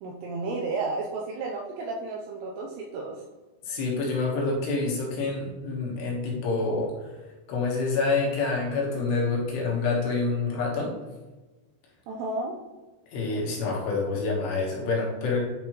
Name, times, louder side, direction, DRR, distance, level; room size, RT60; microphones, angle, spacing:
voice 1, 0.0-3.2 12.1-12.5, right 3 dB, 85° right, -1 dB, 2.5 m, -32 dB
voice 2, 3.7-6.9 7.5-10.9 13.1-15.4, left 3 dB, 70° left, -2 dB, 3.1 m, -27 dB
10.0 x 5.1 x 3.0 m, 1.2 s
omnidirectional pair, 5.6 m